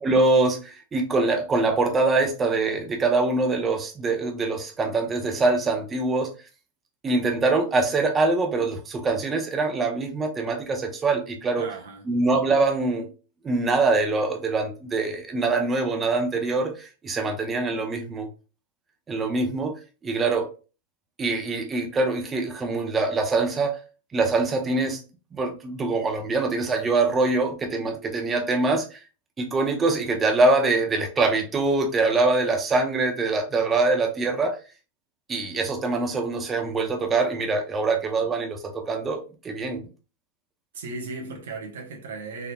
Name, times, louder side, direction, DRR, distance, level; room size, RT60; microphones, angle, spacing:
voice 1, 0.0-6.3 7.0-11.7 12.1-13.1 13.4-18.3 19.1-19.7 20.0-20.5 21.2-23.8 24.1-25.0 25.3-29.0 29.4-34.6 35.3-39.8, right 3 dB, 20° right, 0.6 m, -24 dB
voice 2, 11.5-12.0 40.7-42.5, right 3 dB, 85° right, 1.1 m, -36 dB
3.7 x 2.9 x 2.3 m
supercardioid pair, 135°, 0 cm